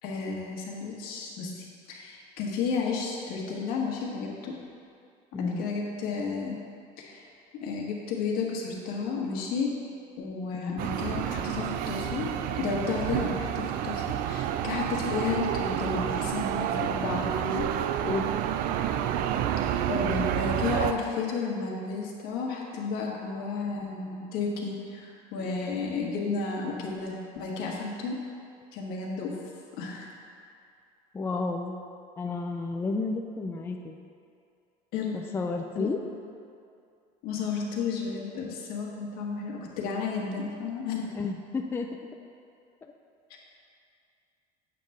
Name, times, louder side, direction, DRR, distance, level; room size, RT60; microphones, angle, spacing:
voice 1, 0.0-4.5 5.4-6.6 7.0-7.3 7.5-9.7 10.2-12.3 12.5-17.7 19.9-28.2 28.7-29.4 29.8-30.1 34.9-35.2 35.7-35.9 37.2-41.1, left 5 dB, 70° left, -2 dB, 1.4 m, -32 dB
voice 2, 5.3-5.7 10.5-10.9 18.0-18.3 20.0-20.4 31.1-31.8 32.2-34.0 35.1-36.0 41.2-42.0 42.8-42.9, left 3 dB, 15° left, 3 dB, 0.3 m, -32 dB
sound 1, 10.8-20.9, right 10 dB, 60° right, 0.4 m, -29 dB
8.3 x 3.5 x 6.5 m, 2.4 s
cardioid pair, 140°, 16 cm